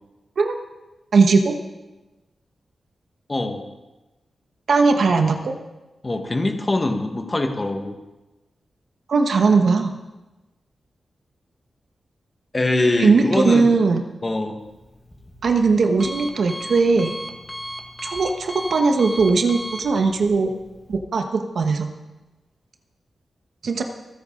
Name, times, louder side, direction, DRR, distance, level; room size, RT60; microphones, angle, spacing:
voice 1, 1.1-1.6 4.7-5.6 9.1-10.0 13.0-14.0 15.4-17.2 18.0-20.5 20.9-21.9 23.6-23.8, right 4 dB, 70° right, 5 dB, 1.3 m, -19 dB
voice 2, 3.3-3.6 6.0-8.0 12.5-13.6 14.2-14.6, left 2 dB, 25° left, 4 dB, 1.6 m, -22 dB
Alarm, 14.6-21.0, equal, 10° left, 1.7 m, -37 dB
26.5 x 9.3 x 3.9 m, 1.1 s
wide cardioid pair, 115°, 0 cm